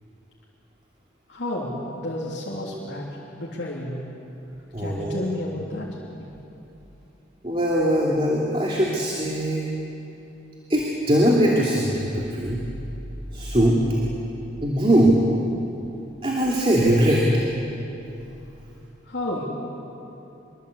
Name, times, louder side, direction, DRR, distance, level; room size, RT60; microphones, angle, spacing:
voice 1, 1.3-3.1 3.4-4.0 4.8-5.9 19.1-19.5, left 1 dB, 65° left, -5 dB, 3.4 m, -31 dB
voice 2, 4.7-5.3 7.4-9.7 10.7-12.6 13.3-13.8 14.6-15.2 16.2-17.2, right 1 dB, 30° right, -3 dB, 2.8 m, -21 dB
26.0 x 24.0 x 8.4 m, 2.9 s
head